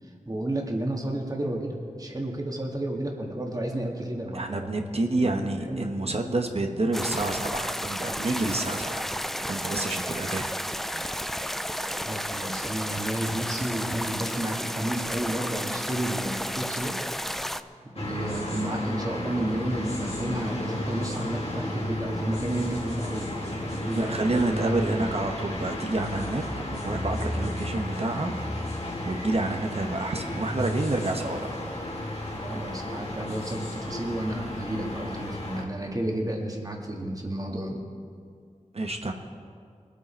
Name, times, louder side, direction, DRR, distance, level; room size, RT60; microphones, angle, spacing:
voice 1, 0.2-4.8 5.2-5.3 5.7-5.9 12.1-17.0 18.0-25.1 32.5-37.8, right 1 dB, 30° right, 0 dB, 2.0 m, -31 dB
voice 2, 4.3-9.1 9.5-10.5 23.9-28.3 29.0-31.5 38.7-39.1, right 2 dB, 50° right, 4 dB, 1.1 m, -28 dB
sound 1, 6.9-17.6, equal, ahead, 0.5 m, -32 dB
sound 2, 18.0-35.6, left 1 dB, 50° left, 2.5 m, -33 dB
21.0 x 9.3 x 4.5 m, 2.3 s
wide cardioid pair, 55°, 13 cm